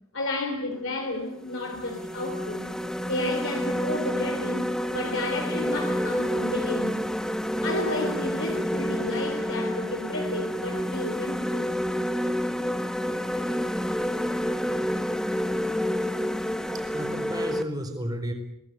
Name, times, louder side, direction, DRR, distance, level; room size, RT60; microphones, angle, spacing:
voice 1, 0.1-2.7 3.1-6.9 7.6-11.7, left 2 dB, 60° left, 2 dB, 3.6 m, -32 dB
sound 1, 0.7-0.9 1.5-17.6, equal, 5° left, 1.0 m, -29 dB
voice 2, 16.7-18.3, equal, 20° right, 7 dB, 4.0 m, -32 dB
24.0 x 18.5 x 9.3 m, 0.81 s
head